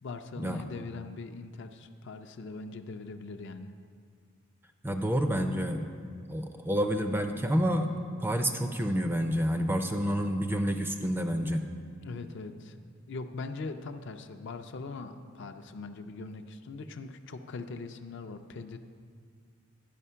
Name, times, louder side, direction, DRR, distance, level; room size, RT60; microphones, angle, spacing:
voice 1, 0.0-3.7 12.0-12.7 13.1-18.8, left 3 dB, 60° left, 7 dB, 0.4 m, -41 dB
voice 2, 4.8-5.9 6.3-7.9 8.2-11.6, equal, 10° right, 6 dB, 0.4 m, -29 dB
11.0 x 5.0 x 5.6 m, 2.1 s
head